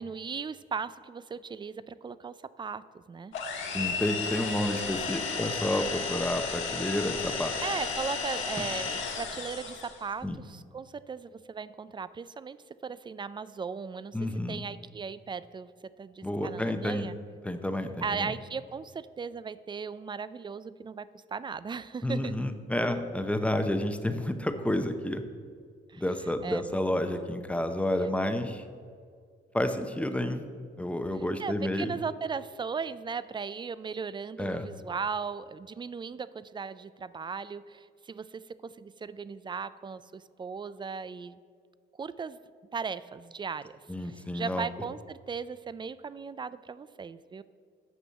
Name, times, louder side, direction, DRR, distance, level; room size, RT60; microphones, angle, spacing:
voice 1, 0.0-3.3 7.6-12.6 12.8-17.1 18.0-22.3 25.9-26.0 26.4-26.8 27.1-27.4 31.4-41.4 42.0-42.4 42.7-47.4, right 5 dB, 25° right, 16 dB, 0.3 m, -37 dB
sound 1, 3.3-10.0, left 5 dB, 80° left, 1.6 m, -33 dB
voice 2, 3.7-7.5 10.2-10.4 14.1-14.6 16.2-17.1 17.4-18.3 22.0-25.2 26.0-28.6 29.5-30.4 30.8-31.9 34.4-34.7 43.9-44.7, left 1 dB, 5° left, 8 dB, 0.8 m, -30 dB
8.3 x 6.2 x 7.1 m, 2.1 s
cardioid pair, 90°, 20 cm